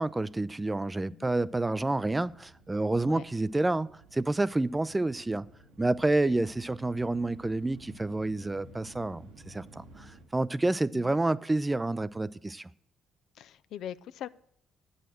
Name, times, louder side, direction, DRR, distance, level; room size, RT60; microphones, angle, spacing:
voice 1, 0.0-5.5 5.8-12.7, right 2 dB, 20° right, 0.4 m, -29 dB
sound 1, 1.3-10.2, right 1 dB, 85° right, 1.7 m, -54 dB
voice 2, 13.4-14.3, left 10 dB, 70° left, 0.3 m, -41 dB
9.1 x 6.5 x 7.5 m
hypercardioid pair, 50°, 0 cm